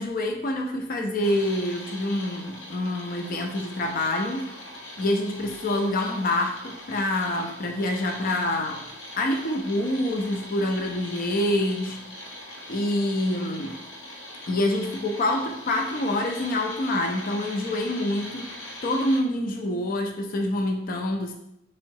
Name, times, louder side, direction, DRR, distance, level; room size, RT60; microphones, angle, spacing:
voice 1, 0.0-4.5 5.0-8.9 9.2-12.0 12.7-13.8 14.5-21.3, left 1 dB, 50° left, 3 dB, 0.5 m, -26 dB
sound 1, 1.2-19.2, left 1 dB, 80° left, 0.9 m, -41 dB
3.6 x 3.1 x 4.6 m, 0.80 s
head